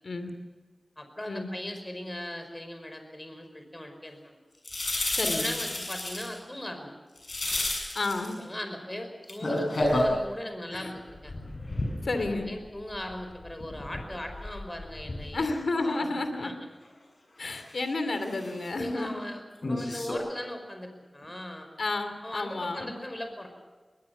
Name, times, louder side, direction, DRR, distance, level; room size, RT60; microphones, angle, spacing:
voice 1, 1.0-4.4 5.4-6.9 8.4-11.3 12.2-16.1 16.4-16.6 18.8-19.4 19.7-21.7 22.2-23.5, left 1 dB, 25° left, 6 dB, 5.2 m, -39 dB
sound 1, 4.6-6.4 7.2-8.3 9.2-10.2 10.9-12.6 12.9-15.4 15.8-15.9 17.5-17.7 18.2-18.7 19.6-20.1, left 1 dB, 65° left, 7.2 m, -31 dB
voice 2, 5.2-5.5 7.9-8.4 10.7-10.9 12.0-12.5 15.3-16.5 17.4-19.3 19.9-20.0 21.8-22.9, left 2 dB, 85° left, 8 dB, 2.5 m, -31 dB
21.5 x 21.0 x 7.1 m, 1.3 s
wide cardioid pair, 45°, 0 cm